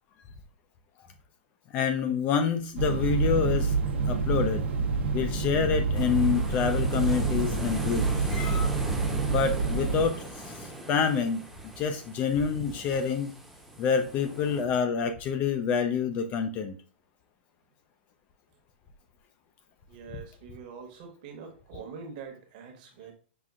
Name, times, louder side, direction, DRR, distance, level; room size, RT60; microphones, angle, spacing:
voice 1, 1.7-3.7 4.1-4.6 5.1-8.7 9.2-11.5 11.8-13.3 13.8-16.8, left 6 dB, 25° left, 8 dB, 0.3 m, -27 dB
sound 1, 2.8-10.1, right 4 dB, 70° right, 0.9 m, -27 dB
sound 2, 5.9-14.7, right 1 dB, ahead, 0.7 m, -39 dB
voice 2, 19.9-23.1, right 6 dB, 45° right, 4 dB, 1.0 m, -44 dB
5.7 x 2.4 x 2.4 m, 0.40 s
hypercardioid pair, 150°, 6 cm